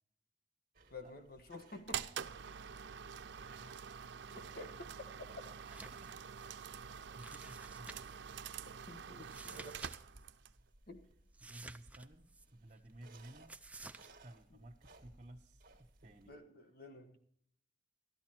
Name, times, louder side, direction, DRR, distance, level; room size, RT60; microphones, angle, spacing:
sound 1, 0.7-16.3, right 2 dB, 55° right, 1.7 m, -64 dB
voice 1, 0.9-2.1 4.3-4.7 8.9-9.8 10.9-11.0 14.5-14.6 16.3-17.2, left 2 dB, 55° left, 6 dB, 1.5 m, -51 dB
sound 2, 1.9-10.6, right 7 dB, 90° right, 0.6 m, -46 dB
voice 2, 3.2-4.3 4.6-4.7 5.6-8.1 11.4-13.6 14.2-16.3, right 1 dB, 35° right, 0 dB, 1.0 m, -57 dB
sound 3, 5.6-6.1 6.4-6.5 7.2-8.2 9.2-10.0 10.2-10.3 11.3-12.5 13.5-14.1, right 3 dB, 10° right, 0.5 m, -52 dB
13.5 x 12.5 x 4.4 m, 0.64 s
head